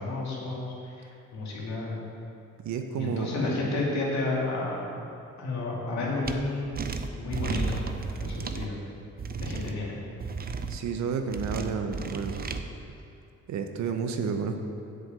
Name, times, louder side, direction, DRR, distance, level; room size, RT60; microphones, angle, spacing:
voice 1, 0.0-2.0 3.0-4.8 5.4-6.7 7.2-7.9 8.2-8.8 9.4-10.0, left 2 dB, 65° left, -4 dB, 2.4 m, -31 dB
voice 2, 2.6-3.6 10.7-12.5 13.5-14.7, right 5 dB, 65° right, 6 dB, 0.9 m, -31 dB
sound 1, 6.3-6.4 6.8-8.7 9.2-9.7 10.2-10.8 11.3-12.6, right 4 dB, 30° right, 0.6 m, -33 dB
7.9 x 5.2 x 7.6 m, 2.6 s
cardioid pair, 90°, 30 cm